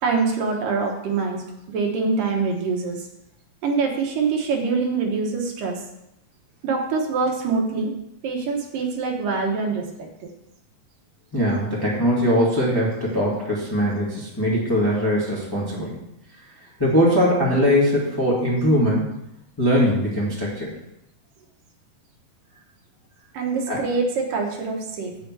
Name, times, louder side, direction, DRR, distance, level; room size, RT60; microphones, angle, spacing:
voice 1, 0.0-3.1 3.6-5.8 6.6-7.9 8.2-10.3 23.3-25.3, right 4 dB, 75° right, 1 dB, 2.7 m, -25 dB
voice 2, 11.3-16.0 16.8-19.1 19.6-20.7 23.7-23.8, equal, 10° left, -6 dB, 1.5 m, -21 dB
8.1 x 6.9 x 4.7 m, 0.84 s
omnidirectional pair, 3.9 m